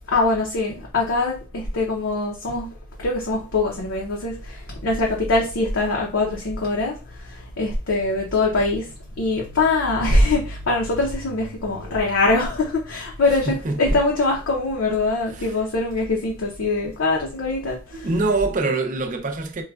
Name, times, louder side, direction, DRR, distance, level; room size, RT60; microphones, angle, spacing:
voice 1, 0.1-2.7 3.0-8.9 9.2-18.1, left 2 dB, 65° left, 0.6 m, -23 dB
voice 2, 13.3-14.0 15.3-15.5 17.9-19.6, right 3 dB, 40° right, 0.5 m, -25 dB
4.6 x 2.2 x 2.3 m
head